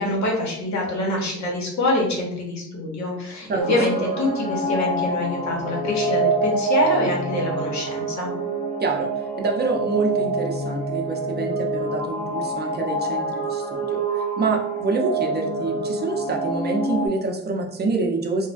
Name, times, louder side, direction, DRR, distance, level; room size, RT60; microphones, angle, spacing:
voice 1, 0.0-8.3, left 1 dB, 65° left, -1 dB, 0.9 m, -25 dB
sound 1, 3.6-17.1, right 2 dB, 10° left, 1.3 m, -26 dB
voice 2, 8.8-9.1 9.4-18.5, right 3 dB, 35° right, 2 dB, 0.6 m, -26 dB
3.1 x 2.1 x 2.5 m, 0.77 s
cardioid pair, 90°, 30 cm